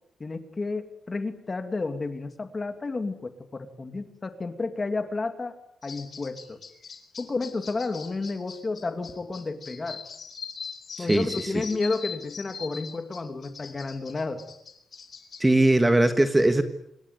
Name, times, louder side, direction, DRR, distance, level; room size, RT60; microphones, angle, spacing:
voice 1, 0.2-5.6 5.8-6.6 7.2-10.0 11.0-14.4, left 3 dB, 25° left, 9 dB, 2.4 m, -31 dB
sound 1, 5.8-15.4, left 6 dB, 40° left, 3.6 m, -41 dB
voice 2, 11.0-11.5 15.4-16.6, right 1 dB, 10° right, 8 dB, 1.6 m, -20 dB
27.0 x 21.5 x 9.3 m, 0.76 s
wide cardioid pair, 170°, 0 cm